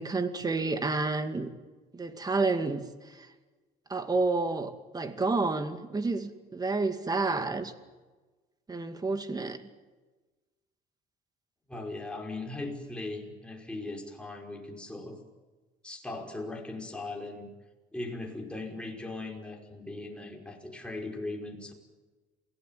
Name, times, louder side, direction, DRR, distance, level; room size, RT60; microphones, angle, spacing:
voice 1, 0.0-1.5 1.9-3.3 3.9-7.7 8.7-9.6, right 3 dB, 20° right, 9 dB, 2.3 m, -30 dB
voice 2, 11.7-15.2 15.8-17.5 17.9-21.7, left 2 dB, 5° left, 1 dB, 5.5 m, -39 dB
28.0 x 18.0 x 9.3 m, 1.2 s
cardioid pair, 110°, 17 cm